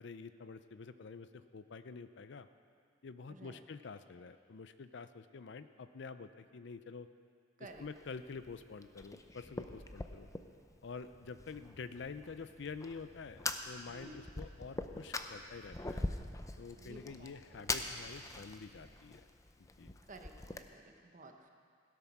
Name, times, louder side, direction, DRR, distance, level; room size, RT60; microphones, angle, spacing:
voice 1, 0.0-2.5 3.0-7.1 7.6-10.3 10.8-16.0 16.6-19.3 19.6-20.0, left 4 dB, 70° left, 12 dB, 0.5 m, -48 dB
voice 2, 3.3-3.6 7.6-7.9 13.9-14.2 16.8-17.7 20.1-21.5, right 2 dB, 45° right, 4 dB, 1.1 m, -54 dB
Fire, 7.7-20.6, left 2 dB, 15° left, 0.5 m, -44 dB
sound 1, 11.1-18.9, equal, 5° right, 2.6 m, -63 dB
16.5 x 8.3 x 6.0 m, 2.2 s
head